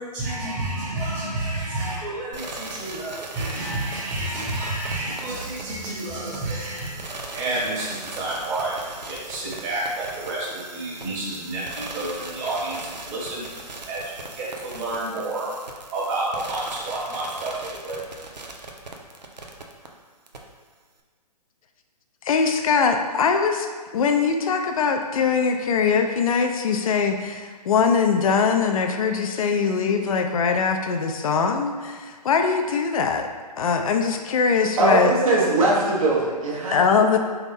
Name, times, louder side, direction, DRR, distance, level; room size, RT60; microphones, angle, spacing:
voice 1, 0.0-8.7 9.1-13.4 13.9-14.0 14.4-15.5 15.9-18.0, right 2 dB, 30° right, -6 dB, 1.4 m, -30 dB
sound 1, 2.3-19.9 20.3-20.4, right 2 dB, 85° right, 0.6 m, -39 dB
voice 2, 22.3-23.7 23.9-33.3 33.6-35.1 36.7-37.2, left 5 dB, 55° left, 5 dB, 0.5 m, -22 dB
voice 3, 34.8-37.2, right 2 dB, 55° right, -4 dB, 1.2 m, -21 dB
3.9 x 3.5 x 3.4 m, 1.5 s
figure-of-eight pair, 130°, 21 cm